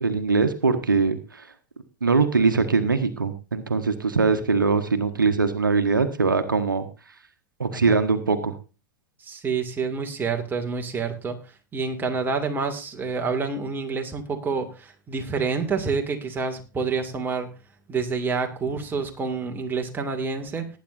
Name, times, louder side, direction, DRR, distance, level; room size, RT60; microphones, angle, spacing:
voice 1, 0.0-1.5 2.0-6.9 7.6-8.5, right 4 dB, 85° right, 10 dB, 1.2 m, -22 dB
voice 2, 9.2-11.4 11.7-17.5 17.9-20.8, right 5 dB, 20° right, 3 dB, 2.3 m, -28 dB
19.0 x 9.3 x 2.6 m, 0.32 s
figure-of-eight pair, 90°, 11 cm